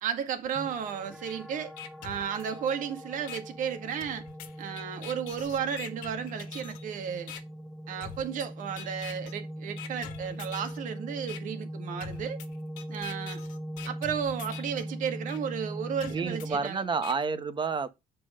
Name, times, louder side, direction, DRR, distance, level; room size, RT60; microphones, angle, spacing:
voice 1, 0.0-1.7 2.0-4.2 4.6-7.3 7.9-12.4 12.9-13.4 13.9-17.0, right 8 dB, 70° right, 1.8 m, -33 dB
sound 1, 0.6-16.6, equal, ahead, 1.3 m, -40 dB
sound 2, 1.3-1.4 1.8-2.8 3.3-3.4 4.0-6.8 7.3-7.4 8.0-8.5 8.8-9.3 9.8-10.8 11.3-11.4 12.0-14.8 15.3-15.4 16.0-17.1, left 10 dB, 90° left, 1.3 m, -44 dB
voice 2, 16.0-17.9, right 5 dB, 35° right, 1.3 m, -30 dB
7.1 x 4.7 x 5.1 m
cardioid pair, 80°, 14 cm